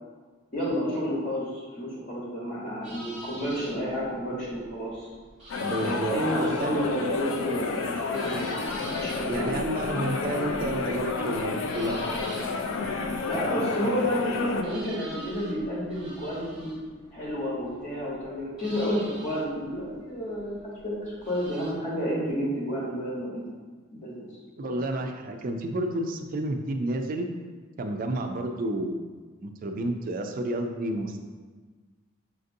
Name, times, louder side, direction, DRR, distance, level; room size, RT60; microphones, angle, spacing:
voice 1, 0.5-5.1 5.8-9.6 13.2-16.7 17.1-20.6 20.8-23.5 23.9-24.2 24.6-24.8, equal, 45° left, -7 dB, 0.9 m, -30 dB
sound 1, 2.8-21.7, right 1 dB, ahead, 1.0 m, -46 dB
sound 2, 5.5-14.6, left 4 dB, 70° left, 0.4 m, -30 dB
voice 2, 5.6-6.9 9.3-12.1 24.6-27.3 27.8-29.0 29.4-31.2, right 1 dB, 45° right, 5 dB, 0.3 m, -30 dB
5.9 x 2.6 x 2.6 m, 1.4 s
head